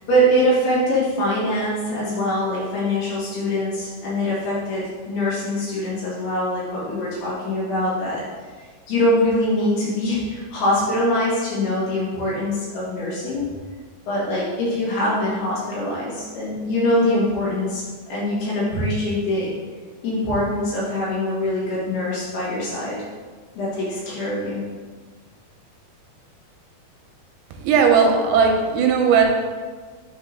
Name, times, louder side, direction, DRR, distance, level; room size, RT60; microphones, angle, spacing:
voice 1, 0.1-8.2 8.9-13.5 14.1-17.8 18.1-19.5 20.0-23.0 23.6-24.6, left 1 dB, 80° left, -8 dB, 4.2 m, -23 dB
voice 2, 27.6-29.3, right 6 dB, 85° right, 2 dB, 2.7 m, -17 dB
9.0 x 4.1 x 3.6 m, 1.5 s
omnidirectional pair, 4.6 m